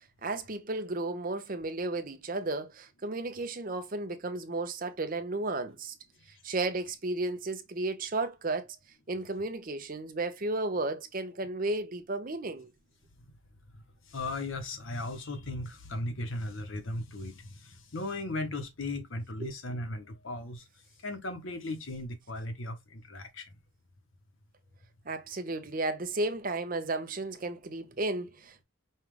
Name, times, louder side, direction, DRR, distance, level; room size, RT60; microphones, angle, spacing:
voice 1, 0.2-5.9 6.4-8.7 9.1-12.7 19.4-19.5 25.1-28.6, right 2 dB, 40° right, 0.6 m, -33 dB
voice 2, 14.1-20.6 21.0-23.5, left 2 dB, 70° left, 0.9 m, -37 dB
5.5 x 2.4 x 3.1 m
head